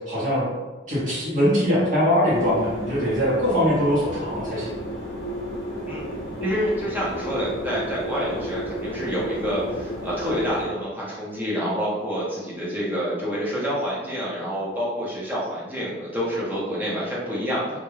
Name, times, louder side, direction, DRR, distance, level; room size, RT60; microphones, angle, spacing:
voice 1, 0.1-0.5 0.9-4.7, equal, 50° right, -9 dB, 0.9 m, -22 dB
sound 1, 2.3-10.6, equal, 60° left, 0.6 m, -33 dB
voice 2, 6.4-17.8, equal, 10° right, -7 dB, 0.7 m, -27 dB
2.3 x 2.2 x 3.1 m, 1.2 s
head